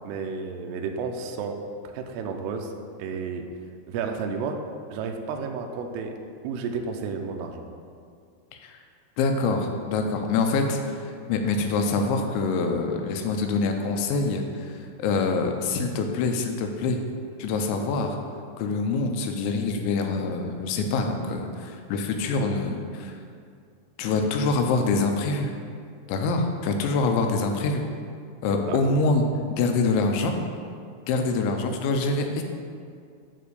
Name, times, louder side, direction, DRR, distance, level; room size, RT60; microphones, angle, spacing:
voice 1, 0.0-1.6 1.9-2.7 3.0-3.5 3.9-4.6 4.9-6.1 6.4-7.6 28.7-28.8, right 5 dB, 85° right, 4 dB, 2.5 m, -31 dB
voice 2, 9.2-17.0 17.4-18.2 18.6-23.1 24.0-25.5 26.1-27.8 28.4-29.2 29.6-30.4 31.1-32.4, left 3 dB, 85° left, 4 dB, 3.0 m, -25 dB
9.4 x 3.6 x 6.8 m, 2.3 s
omnidirectional pair, 5.4 m